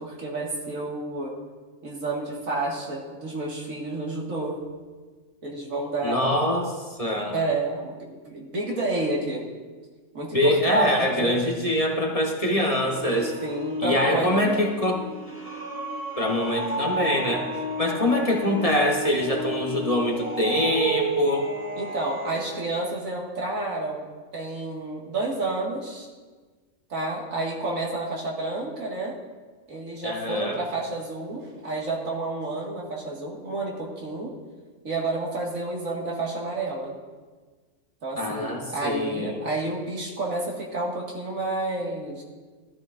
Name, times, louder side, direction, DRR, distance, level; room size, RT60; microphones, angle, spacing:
voice 1, 0.0-1.3 1.8-4.6 5.4-6.4 7.3-9.4 10.1-11.4 13.4-14.7 17.9-18.2 21.7-24.1 24.3-26.1 26.9-29.1 29.7-34.3 34.8-36.9 38.0-42.2, right 2 dB, 85° right, -3 dB, 2.3 m, -30 dB
voice 2, 6.0-6.7 7.0-7.3 10.3-13.3 13.8-15.0 16.2-17.5 17.8-21.5 30.0-30.6 38.2-39.4, left 1 dB, 30° left, 0 dB, 1.1 m, -24 dB
sound 1, 12.1-22.6, right 1 dB, 10° right, 1.4 m, -33 dB
13.5 x 13.5 x 2.5 m, 1.4 s
omnidirectional pair, 1.4 m